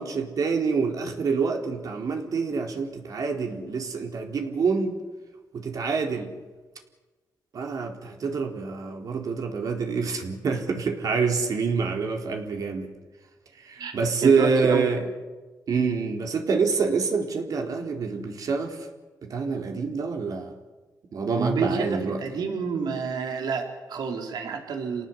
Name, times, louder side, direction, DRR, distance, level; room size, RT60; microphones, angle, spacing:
voice 1, 0.0-5.0 5.5-6.3 7.5-12.9 13.6-15.0 15.7-18.9 19.2-20.6 21.1-22.2, right 5 dB, 60° right, 3 dB, 4.1 m, -26 dB
voice 2, 14.2-14.9 21.4-25.1, right 5 dB, 75° right, 3 dB, 4.6 m, -29 dB
29.0 x 18.0 x 8.3 m, 1.3 s
cardioid pair, 105°, 7 cm